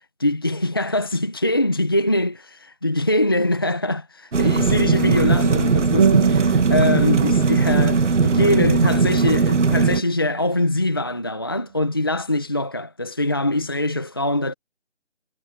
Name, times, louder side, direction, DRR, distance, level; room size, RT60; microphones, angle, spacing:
voice 1, 0.0-14.5, left 1 dB, 20° left, 1.2 m, -23 dB
sound 1, 4.3-10.0, right 4 dB, 75° right, 1.3 m, -19 dB
sound 2, 6.0-11.0, right 6 dB, 15° right, 2.5 m, -26 dB
figure-of-eight pair, 175°, 37 cm